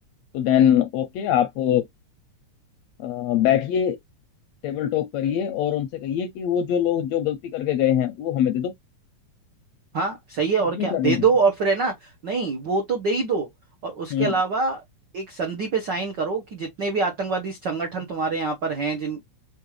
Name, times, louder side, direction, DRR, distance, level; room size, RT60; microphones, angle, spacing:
voice 1, 0.3-1.8 3.0-4.0 4.6-8.7 10.8-11.2 14.1-14.3, left 10 dB, 80° left, 1.6 m, -23 dB
voice 2, 9.9-13.5 13.8-14.8 15.1-19.2, right 4 dB, 85° right, 0.9 m, -25 dB
5.2 x 2.4 x 3.1 m
omnidirectional pair, 3.5 m